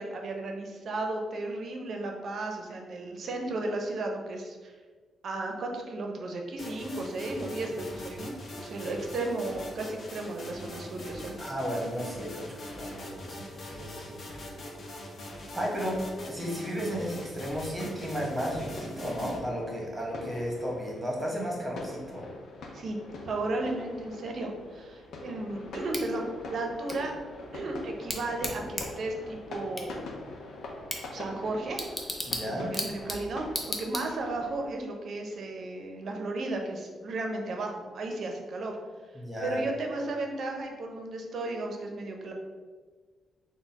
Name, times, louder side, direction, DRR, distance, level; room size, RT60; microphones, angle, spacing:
voice 1, 0.0-4.7 5.2-8.3 8.6-11.4 22.7-23.0 23.2-27.1 27.5-30.1 31.1-31.9 32.6-33.4 33.8-38.8 39.4-42.3, right 2 dB, 60° right, 2 dB, 0.6 m, -34 dB
sound 1, 6.6-19.4, left 1 dB, 55° left, 0.8 m, -42 dB
voice 2, 11.4-14.2 15.5-22.2 32.3-32.7 39.1-39.6, equal, 15° right, -3 dB, 1.3 m, -34 dB
sound 2, 17.4-34.7, left 2 dB, 75° left, 0.6 m, -44 dB
Bicycle / Tick, 25.9-34.5, left 1 dB, 15° left, 0.6 m, -38 dB
4.0 x 2.2 x 4.1 m, 1.4 s
cardioid pair, 85°, 0 cm